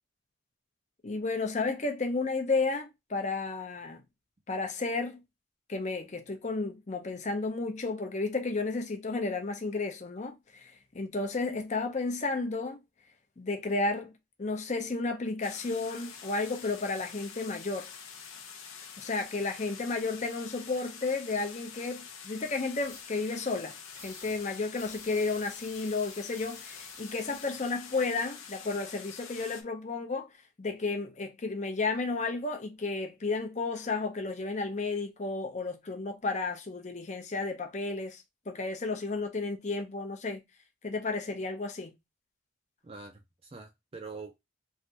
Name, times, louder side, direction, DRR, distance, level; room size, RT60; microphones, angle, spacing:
voice 1, 1.0-4.0 4.5-5.2 5.7-12.8 13.4-14.1 14.4-17.9 19.0-23.8 24.0-30.3 30.6-40.4 40.8-41.9, left 3 dB, 35° left, 0.6 m, -32 dB
sound 1, 15.4-29.6, left 7 dB, 85° left, 0.6 m, -47 dB
sound 2, 22.8-23.0 23.9-24.4 24.7-27.6, left 2 dB, 15° left, 0.9 m, -52 dB
voice 2, 42.8-44.4, right 4 dB, 30° right, 0.4 m, -45 dB
3.2 x 2.5 x 2.7 m
head